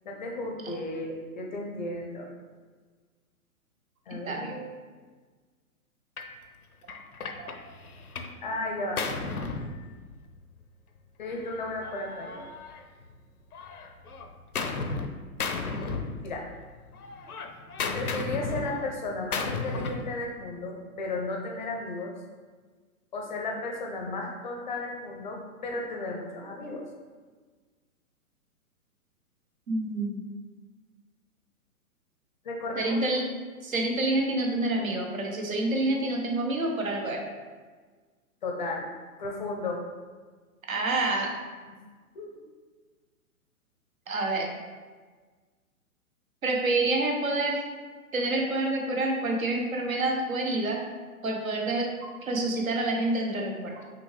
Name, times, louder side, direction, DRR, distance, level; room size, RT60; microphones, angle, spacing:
voice 1, 0.0-2.3 4.1-4.7 8.4-9.0 11.2-12.5 16.2-16.4 17.9-22.1 23.1-26.8 32.4-33.0 38.4-38.9 39.2-39.8 42.1-42.4, left 2 dB, 35° left, 0 dB, 0.5 m, -34 dB
voice 2, 4.2-4.6 7.4-7.5 29.7-30.2 32.7-33.2 33.6-37.2 40.7-41.3 44.1-44.5 46.4-47.6 48.1-50.8 51.2-53.8, right 2 dB, 65° right, 1 dB, 1.0 m, -28 dB
Gunshot gunfire, 6.2-6.4 6.9-8.4 8.7-10.4 11.3-13.2 13.5-15.1 15.4-16.6 16.9-20.1, left 4 dB, 80° left, 0.6 m, -34 dB
6.0 x 2.5 x 3.2 m, 1.4 s
figure-of-eight pair, 120°, 44 cm